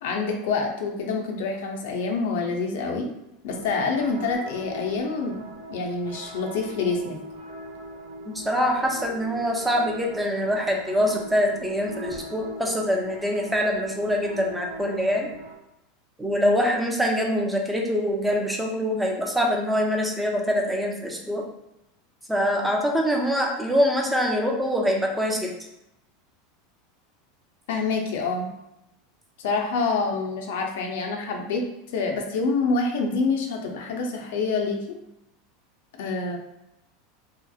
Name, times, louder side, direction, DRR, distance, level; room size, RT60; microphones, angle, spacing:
voice 1, 0.0-3.1 3.4-5.4 5.7-7.2 27.7-28.5 29.4-31.6 31.9-35.0 36.0-36.4, left 4 dB, 75° left, 2 dB, 0.5 m, -26 dB
sound 1, 3.5-15.6, right 1 dB, 85° right, 0.4 m, -40 dB
voice 2, 8.3-15.3 16.2-21.4 22.3-25.6, equal, 5° right, 0 dB, 0.4 m, -24 dB
2.7 x 2.0 x 2.3 m, 0.86 s
supercardioid pair, 115°, 0 cm